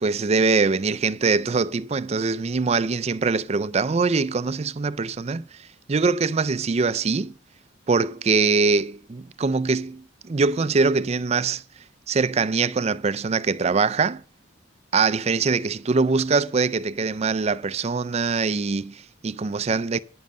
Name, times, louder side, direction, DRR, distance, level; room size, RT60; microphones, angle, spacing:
voice 1, 0.0-7.3 7.9-11.6 12.1-14.2 14.9-20.0, right 4 dB, 35° right, 0.4 m, -23 dB
10.5 x 7.3 x 6.5 m
head